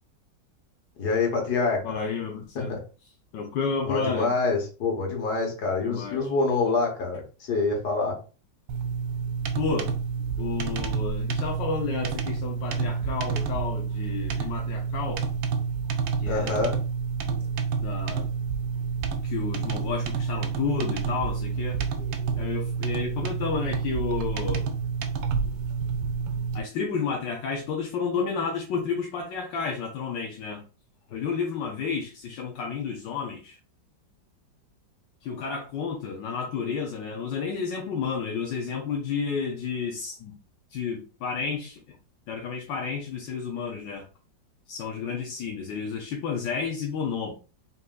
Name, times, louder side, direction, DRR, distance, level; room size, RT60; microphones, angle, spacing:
voice 1, 1.0-1.9 2.6-2.8 3.9-8.2 16.3-16.8, left 3 dB, 60° left, 1.8 m, -26 dB
voice 2, 1.8-2.8 3.3-4.3 5.9-6.3 9.5-9.9 10.4-15.2 16.2-16.6 17.8-18.3 19.2-21.8 22.4-24.7 26.5-30.6 31.1-33.6 35.2-40.3 40.7-42.0 42.3-44.0 44.7-47.3, left 5 dB, 80° left, 1.4 m, -31 dB
sound 1, 8.7-26.6, right 6 dB, 85° right, 1.3 m, -29 dB
4.1 x 3.8 x 2.4 m
omnidirectional pair, 2.0 m